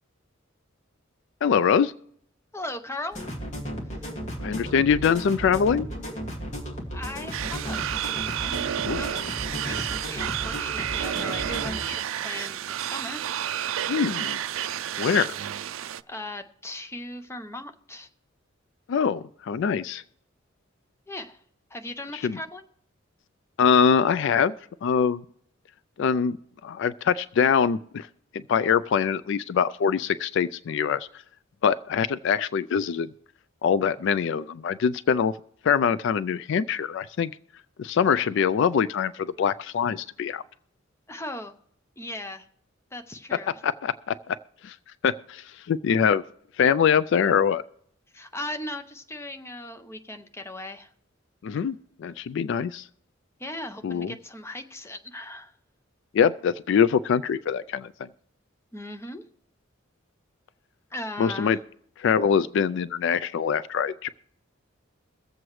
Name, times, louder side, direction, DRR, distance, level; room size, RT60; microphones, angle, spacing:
voice 1, 1.4-1.9 4.4-5.9 8.8-9.0 13.9-14.4 15.0-15.4 18.9-20.0 22.1-22.4 23.6-24.5 24.8-25.2 26.0-26.4 26.6-28.1 28.3-31.1 31.6-33.1 33.6-35.3 35.6-37.3 37.8-40.4 43.3-44.4 44.6-44.8 45.0-46.2 46.6-47.6 51.4-52.9 53.8-54.1 56.1-58.1 61.2-61.6 62.0-64.1, left 7 dB, 65° left, 17 dB, 0.3 m, -23 dB
voice 2, 2.5-3.3 6.9-9.2 9.6-13.2 15.8-18.1 21.1-21.4 21.7-22.6 41.1-41.5 42.0-42.4 42.9-43.5 48.1-50.9 53.4-55.5 58.7-59.2 60.9-61.6, left 1 dB, 15° left, 6 dB, 0.7 m, -38 dB
sound 1, 3.1-11.8, equal, 35° left, 2.2 m, -35 dB
sound 2, 7.3-16.0, right 10 dB, 75° right, 0.4 m, -30 dB
23.0 x 7.7 x 3.2 m, 0.67 s
head